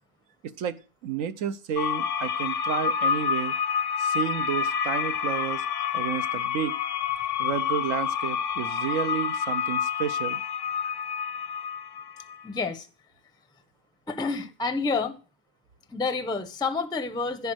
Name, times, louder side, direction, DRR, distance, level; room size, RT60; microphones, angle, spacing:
voice 1, 0.4-3.5 4.0-5.6 5.9-6.8 7.4-10.4 10.8-10.9, right 9 dB, 65° right, 1.2 m, -31 dB
sound 1, 1.8-12.4, left 7 dB, 65° left, 1.0 m, -28 dB
voice 2, 12.4-12.9 14.1-15.2 15.9-17.5, left 4 dB, 5° left, 0.7 m, -29 dB
14.5 x 5.3 x 6.3 m
omnidirectional pair, 1.5 m